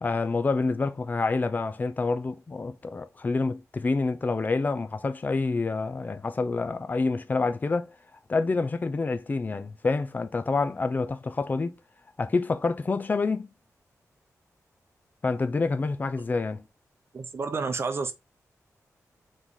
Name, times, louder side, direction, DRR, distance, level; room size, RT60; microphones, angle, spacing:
voice 1, 0.0-7.9 8.3-11.7 12.2-13.5 15.2-16.6, left 3 dB, 30° left, 0.5 m, -27 dB
voice 2, 17.1-18.1, right 4 dB, 45° right, 0.7 m, -30 dB
3.6 x 3.1 x 4.0 m
wide cardioid pair, 135°, 6 cm